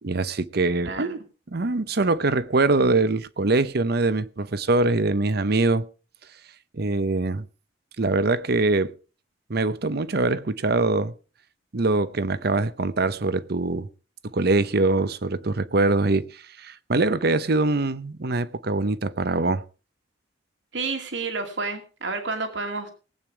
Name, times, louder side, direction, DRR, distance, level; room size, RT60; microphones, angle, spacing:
voice 1, 0.0-1.2 1.5-5.9 6.7-7.4 8.0-8.9 9.5-11.1 11.7-13.9 14.2-19.6, right 3 dB, 55° right, 0.8 m, -23 dB
voice 2, 0.8-1.2 20.7-22.9, right 3 dB, 75° right, 2.4 m, -30 dB
18.5 x 8.9 x 4.8 m
head